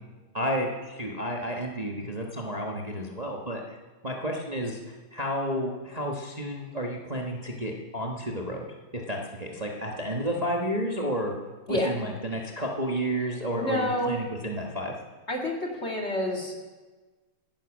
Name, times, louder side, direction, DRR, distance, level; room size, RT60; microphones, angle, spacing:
voice 1, 0.3-3.8 4.0-4.8 5.1-8.7 8.9-11.3 11.7-14.9, equal, 25° right, 0 dB, 1.1 m, -31 dB
voice 2, 13.6-14.2 15.3-16.6, left 1 dB, 30° left, 0 dB, 2.4 m, -28 dB
17.0 x 10.0 x 6.2 m, 1.3 s
omnidirectional pair, 2.4 m